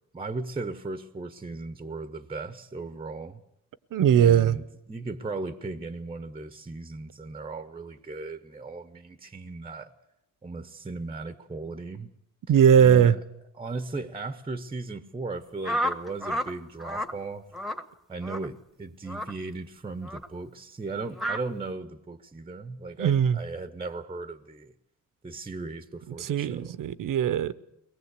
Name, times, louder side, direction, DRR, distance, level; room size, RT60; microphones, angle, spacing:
voice 1, 0.1-3.4 4.1-9.9 10.4-12.1 12.8-13.1 13.5-17.5 18.1-24.7 25.2-26.8, right 3 dB, 15° right, 1.0 m, -37 dB
voice 2, 3.9-4.6 12.5-13.1 23.0-23.4 26.1-27.6, right 8 dB, 70° right, 1.0 m, -20 dB
sound 1, 15.6-16.5 16.8-17.1 17.5-17.8 18.2-18.5 19.1-19.3 20.0-20.3 21.1-21.4, equal, ahead, 1.2 m, -30 dB
22.5 x 19.5 x 8.2 m
cardioid pair, 130°, 34 cm